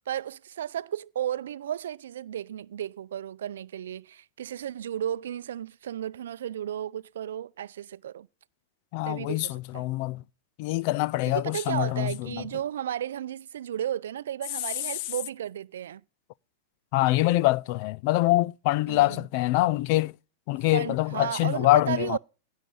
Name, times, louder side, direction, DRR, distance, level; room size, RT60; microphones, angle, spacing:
voice 1, 0.1-8.3 9.1-9.8 11.3-16.0 18.9-19.3 20.7-22.2, right 10 dB, 80° right, 0.5 m, -34 dB
voice 2, 8.9-10.2 10.6-12.4 16.9-20.1 20.5-22.2, left 18 dB, 55° left, 0.4 m, -25 dB
16.0 x 6.7 x 4.0 m
hypercardioid pair, 120°, 0 cm